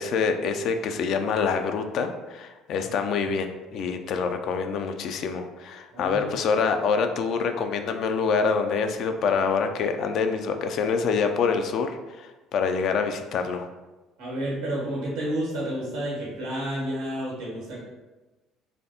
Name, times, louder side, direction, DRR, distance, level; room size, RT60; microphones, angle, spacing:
voice 1, 0.0-13.7, left 5 dB, 60° left, 6 dB, 0.3 m, -26 dB
voice 2, 5.9-6.2 14.2-17.8, right 1 dB, 80° right, -4 dB, 1.5 m, -30 dB
4.2 x 2.6 x 2.8 m, 1.1 s
hypercardioid pair, 60°, 0 cm